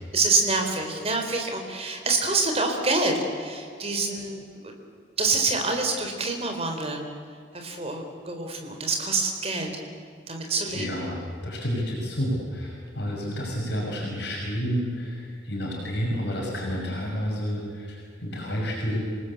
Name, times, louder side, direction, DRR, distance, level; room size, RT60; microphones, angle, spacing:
voice 1, 0.1-4.4 5.2-7.0 7.5-9.7 10.3-11.0, right 3 dB, 30° right, 3 dB, 3.9 m, -26 dB
voice 2, 10.4-19.0, equal, 60° left, -3 dB, 5.9 m, -30 dB
27.5 x 19.0 x 8.3 m, 2.4 s
head